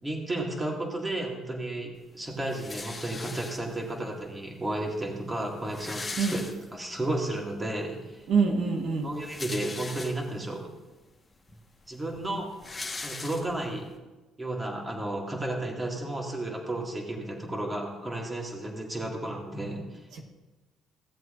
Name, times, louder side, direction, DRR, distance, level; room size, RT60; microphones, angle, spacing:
voice 1, 0.0-6.4 6.7-8.2 9.0-10.7 11.9-12.5 13.0-13.9 14.4-20.0, right 1 dB, 15° right, 0 dB, 2.2 m, -33 dB
sound 1, 2.5-3.9 4.8-4.9 5.1-5.2 5.4-7.0 7.5-7.6 9.0-10.5 11.1-11.2 11.5-13.8, left 3 dB, 20° left, 1.6 m, -39 dB
voice 2, 8.3-9.1 20.1-20.2, right 5 dB, 75° right, 1 dB, 1.5 m, -25 dB
16.5 x 7.7 x 2.6 m, 1.1 s
cardioid pair, 85°, 0 cm